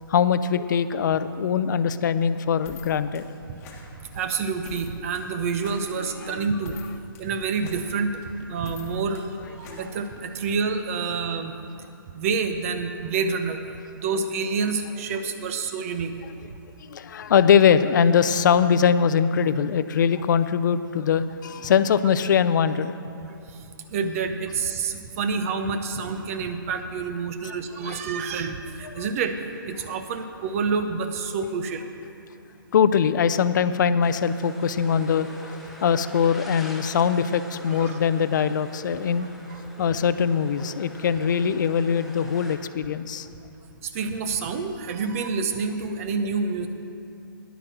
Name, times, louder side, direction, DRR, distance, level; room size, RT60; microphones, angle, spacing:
voice 1, 0.1-3.3 6.2-6.5 9.7-9.8 16.8-23.0 27.4-27.5 27.8-28.0 28.8-29.1 32.7-39.3 39.8-43.3, left 7 dB, 55° left, 13 dB, 0.5 m, -22 dB
sound 1, 2.6-10.5, left 4 dB, 20° left, 1.4 m, -46 dB
voice 2, 4.1-6.8 7.2-8.2 8.5-11.5 12.1-13.6 13.9-16.1 23.9-29.4 29.7-31.8 37.8-38.0 39.5-39.6 43.8-46.7, right 5 dB, 40° right, 8 dB, 0.9 m, -28 dB
sound 2, 34.0-42.6, left 1 dB, ahead, 1.0 m, -44 dB
10.5 x 8.9 x 6.1 m, 2.6 s
hypercardioid pair, 140°, 12 cm